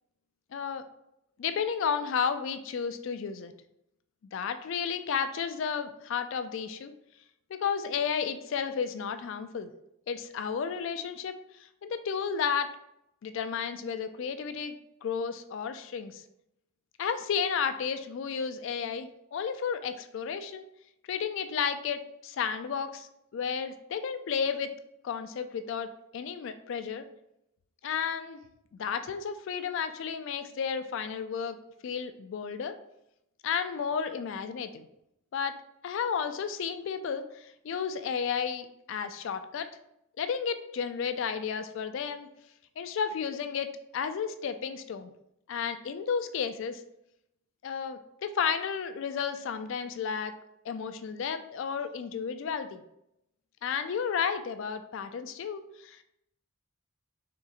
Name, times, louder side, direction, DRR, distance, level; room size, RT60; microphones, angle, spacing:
voice 1, 0.5-0.8 1.4-3.5 4.3-6.9 7.5-9.7 10.1-12.7 13.2-14.8 15.0-16.2 17.0-20.7 21.1-23.1 23.3-24.7 25.0-27.0 27.8-28.4 28.7-31.6 31.8-32.7 33.4-34.8 35.3-35.6 35.8-39.7 40.2-42.3 42.8-45.1 45.5-46.8 47.6-50.3 50.7-52.8 53.6-56.0, left 6 dB, 60° left, 9 dB, 0.3 m, -32 dB
4.0 x 3.7 x 2.4 m, 0.81 s
head